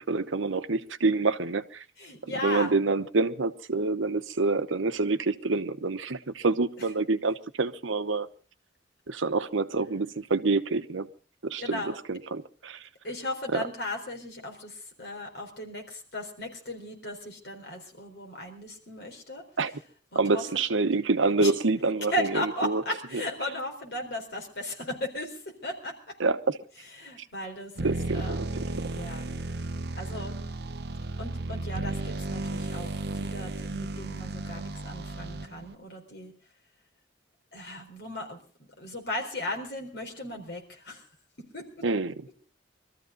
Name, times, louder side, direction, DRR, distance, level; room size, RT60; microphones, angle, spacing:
voice 1, 0.0-1.8 2.4-8.3 9.1-11.1 11.4-12.9 13.5-13.6 19.6-19.7 20.1-22.3 22.6-22.8 26.2-26.6 27.8-28.4 41.8-42.3, right 3 dB, 80° right, 0.9 m, -27 dB
voice 2, 2.0-2.7 11.6-12.0 13.0-19.4 20.1-20.4 21.4-21.5 22.1-26.2 27.0-28.5 28.9-29.4 30.0-30.4 31.2-36.3 37.5-38.4 38.8-41.1 41.4-41.8, left 1 dB, 55° left, 4.2 m, -36 dB
sound 1, 27.8-35.7, right 2 dB, 55° right, 0.8 m, -34 dB
23.0 x 14.0 x 3.9 m
head